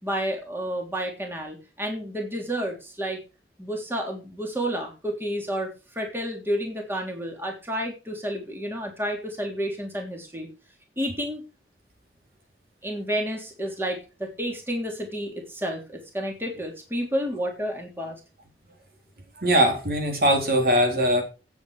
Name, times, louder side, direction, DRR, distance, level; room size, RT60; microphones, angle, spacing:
voice 1, 0.0-3.2 3.6-10.5 11.0-11.4 12.8-18.2, equal, 15° right, 1 dB, 3.4 m, -30 dB
voice 2, 19.4-21.2, equal, 55° right, 2 dB, 4.1 m, -21 dB
16.5 x 8.4 x 5.0 m, 0.32 s
head